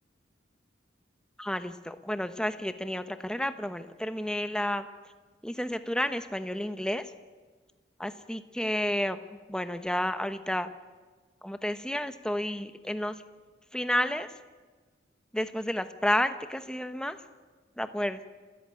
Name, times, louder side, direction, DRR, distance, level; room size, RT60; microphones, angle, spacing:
voice 1, 1.4-4.9 5.4-7.1 8.0-10.7 11.4-13.2 13.7-14.3 15.3-17.2 17.8-18.2, left 1 dB, 5° left, 10 dB, 0.9 m, -31 dB
29.5 x 14.0 x 9.1 m, 1.4 s
head